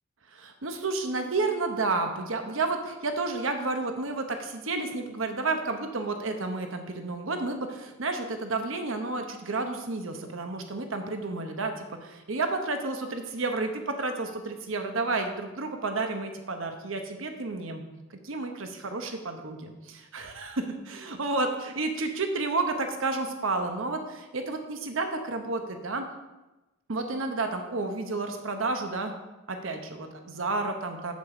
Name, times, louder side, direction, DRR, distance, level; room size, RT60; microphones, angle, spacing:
voice 1, 0.3-17.8 18.2-26.0 26.9-29.1 29.5-31.1, right 3 dB, 70° right, 5 dB, 0.9 m, -31 dB
7.5 x 7.4 x 4.9 m, 1.1 s
head